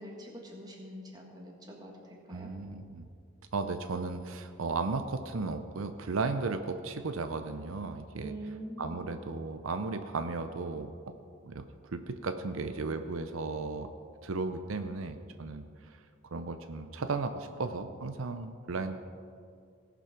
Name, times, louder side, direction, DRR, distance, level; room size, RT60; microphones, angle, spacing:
voice 1, 0.0-2.5 8.2-9.2, right 1 dB, 20° right, 0 dB, 1.6 m, -44 dB
voice 2, 2.3-3.1 3.5-8.3 8.8-11.1 11.4-13.9 14.2-16.0 16.3-19.0, right 3 dB, 80° right, 8 dB, 0.6 m, -35 dB
17.5 x 6.0 x 5.9 m, 2.3 s
head